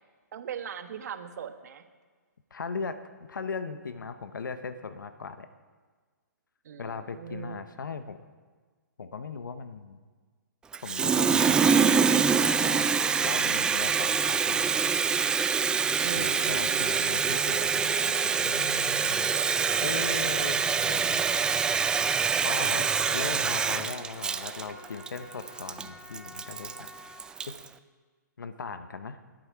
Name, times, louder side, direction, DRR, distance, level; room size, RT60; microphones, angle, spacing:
voice 1, 0.3-1.8 6.6-7.6 16.0-17.2 22.3-22.8, right 8 dB, 60° right, 8 dB, 1.3 m, -40 dB
voice 2, 2.5-3.0 3.3-5.5 6.8-8.2 9.0-10.0 10.8-12.9 13.2-14.7 16.1-19.5 19.8-21.3 22.4-26.9 27.5-27.6 28.4-29.2, left 5 dB, 80° left, 10 dB, 1.0 m, -38 dB
Water tap faucet, 10.7-27.6, right 6 dB, 10° right, 0.3 m, -25 dB
Trumpet, 17.9-27.4, left 1 dB, 25° left, 2.3 m, -49 dB
21.0 x 9.0 x 4.7 m, 1.5 s
hypercardioid pair, 140°, 10 cm